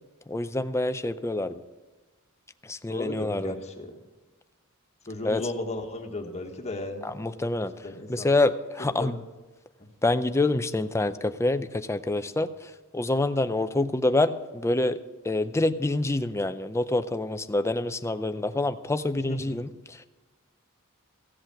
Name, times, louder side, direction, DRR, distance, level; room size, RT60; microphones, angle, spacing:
voice 1, 0.3-1.6 2.7-3.5 5.2-5.5 7.0-7.7 8.1-9.2 10.0-12.5 12.9-15.0 15.2-19.7, left 2 dB, 10° left, 11 dB, 0.5 m, -26 dB
voice 2, 2.9-4.0 5.1-7.1 7.8-8.3 8.8-9.1 19.3-19.6, left 2 dB, 30° left, 3 dB, 1.4 m, -35 dB
15.5 x 8.1 x 6.0 m, 1.2 s
head